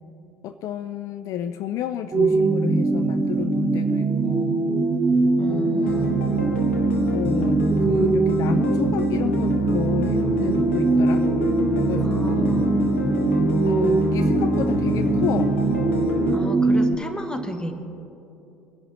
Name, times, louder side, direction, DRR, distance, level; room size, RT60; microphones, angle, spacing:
voice 1, 0.4-4.8 5.5-6.0 7.1-11.3 11.7-12.7 13.6-15.6, left 10 dB, 55° left, 11 dB, 0.4 m, -31 dB
sound 1, 2.1-16.9, right 3 dB, 20° right, 0.7 m, -22 dB
voice 2, 5.4-6.1 12.0-12.8 16.3-17.7, equal, 10° left, 7 dB, 1.3 m, -33 dB
sound 2, 5.8-16.4, left 3 dB, 80° left, 1.5 m, -28 dB
22.0 x 11.0 x 3.0 m, 2.8 s
hypercardioid pair, 65°, 7 cm